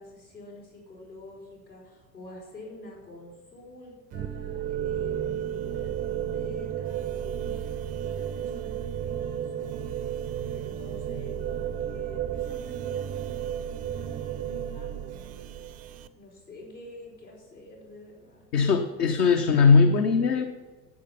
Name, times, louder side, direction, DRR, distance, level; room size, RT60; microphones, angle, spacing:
voice 1, 0.0-10.1 10.5-15.4 16.1-18.4, left 2 dB, 85° left, -5 dB, 5.1 m, -47 dB
sound 1, 4.1-16.1, right 10 dB, 20° right, 0.4 m, -33 dB
voice 2, 18.5-20.5, left 5 dB, 65° left, 5 dB, 1.1 m, -20 dB
11.0 x 8.7 x 7.1 m, 1.3 s
figure-of-eight pair, 80°, 49 cm